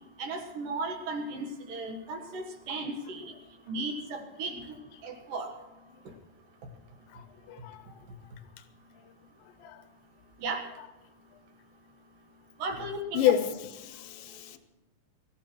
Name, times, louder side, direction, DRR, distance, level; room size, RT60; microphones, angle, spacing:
voice 1, 0.2-3.3 3.7-4.8 5.0-5.5 10.4-10.6 12.6-13.2, right 2 dB, 65° right, 3.0 m, -35 dB
voice 2, 7.1-8.0 9.6-9.8 10.8-10.9 12.7-14.6, left 11 dB, 80° left, 2.3 m, -31 dB
24.0 x 14.5 x 3.2 m
omnidirectional pair, 4.4 m